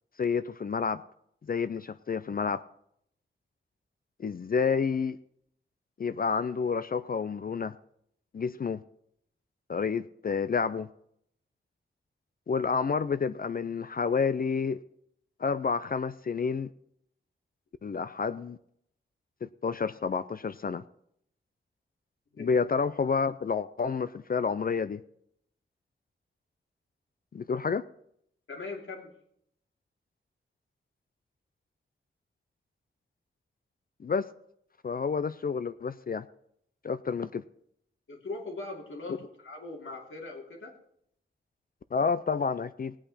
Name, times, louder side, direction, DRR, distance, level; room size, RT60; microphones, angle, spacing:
voice 1, 0.2-1.0 1.4-2.6 4.2-5.2 6.0-7.8 8.3-8.8 9.7-10.9 12.5-14.8 15.4-16.7 17.8-18.6 19.4-20.8 22.4-25.0 27.3-27.8 34.0-34.3 34.8-36.3 36.8-37.4 39.1-39.2 41.9-43.0, left 5 dB, 45° left, 13 dB, 0.5 m, -29 dB
voice 2, 28.5-29.1 38.1-40.8, left 3 dB, 75° left, 0 dB, 2.9 m, -40 dB
18.5 x 8.8 x 4.2 m, 0.71 s
wide cardioid pair, 115°, 21 cm